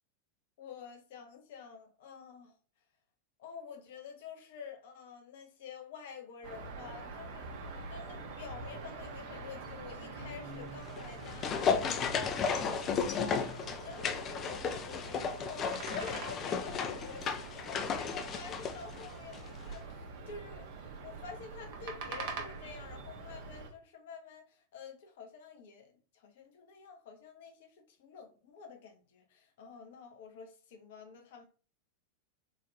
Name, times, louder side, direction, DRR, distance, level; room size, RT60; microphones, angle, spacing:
voice 1, 0.6-2.5 3.4-7.6 7.9-20.7 21.0-31.4, left 6 dB, 55° left, 0.8 m, -48 dB
sound 1, 6.4-23.7, right 3 dB, 50° right, 0.7 m, -45 dB
sound 2, 10.8-19.5 19.7-19.8, left 6 dB, 30° left, 0.4 m, -34 dB
3.7 x 2.4 x 2.9 m
figure-of-eight pair, 90°, 0 cm